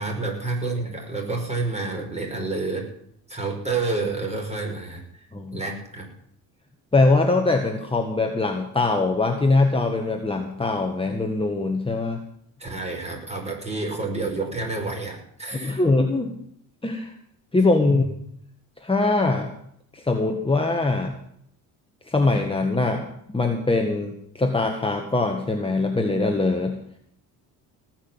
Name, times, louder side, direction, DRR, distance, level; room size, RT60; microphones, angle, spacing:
voice 1, 0.0-2.9 3.3-5.0 5.5-6.1 12.6-15.8 17.9-18.0, right 3 dB, 15° right, 1 dB, 5.5 m, -29 dB
voice 2, 5.3-5.6 6.9-12.2 15.5-16.3 16.8-17.1 17.5-18.0 18.8-19.5 19.9-21.2 22.1-26.8, left 3 dB, 15° left, 3 dB, 1.7 m, -22 dB
18.0 x 6.2 x 9.0 m, 0.69 s
cardioid pair, 85°, 37 cm